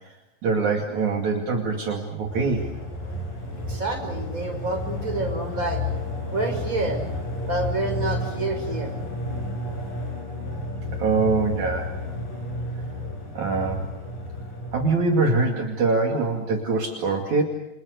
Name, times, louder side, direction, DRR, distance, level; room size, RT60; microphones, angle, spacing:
voice 1, 0.4-2.7 11.0-12.0 13.4-13.8 14.7-17.4, right 4 dB, 60° right, 1 dB, 3.8 m, -23 dB
sound 1, 2.2-15.3, left 1 dB, 75° left, 9.4 m, -31 dB
voice 2, 3.7-5.8 6.3-7.0 7.5-9.0, right 2 dB, 20° right, 4 dB, 6.0 m, -28 dB
30.0 x 27.0 x 6.6 m, 0.91 s
omnidirectional pair, 4.0 m